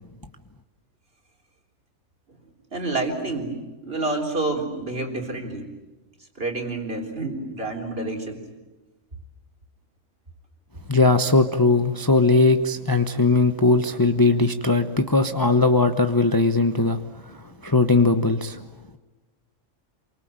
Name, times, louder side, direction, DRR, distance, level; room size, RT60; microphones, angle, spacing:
voice 1, 2.7-5.7 6.4-8.4, right 2 dB, 50° right, 2 dB, 4.0 m, -28 dB
voice 2, 10.9-18.6, left 3 dB, 20° left, 7 dB, 0.9 m, -19 dB
28.0 x 24.0 x 8.9 m, 1.2 s
omnidirectional pair, 1.3 m